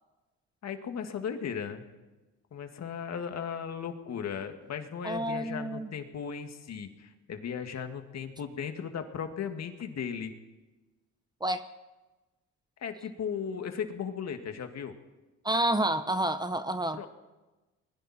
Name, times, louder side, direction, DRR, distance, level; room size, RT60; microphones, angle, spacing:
voice 1, 0.6-1.9 2.5-10.3 12.8-14.9 16.9-17.1, left 7 dB, 60° left, 6 dB, 2.2 m, -36 dB
voice 2, 5.0-5.9 11.4-11.6 15.4-17.1, right 1 dB, 15° right, 10 dB, 1.1 m, -29 dB
29.0 x 21.5 x 4.4 m, 1.1 s
cardioid pair, 90°, 30 cm